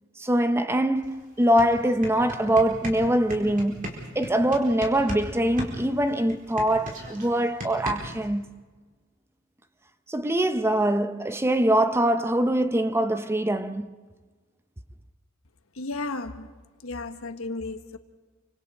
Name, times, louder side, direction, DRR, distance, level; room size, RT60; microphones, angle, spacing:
voice 1, 0.2-8.6 10.1-13.9, right 1 dB, 10° right, 0.7 m, -23 dB
sound 1, 1.0-1.1 1.4-5.3 5.6-8.3, right 1 dB, 40° right, 4.6 m, -36 dB
voice 2, 15.7-16.5 16.8-18.0, left 3 dB, 80° left, 1.3 m, -34 dB
28.5 x 25.5 x 4.2 m
head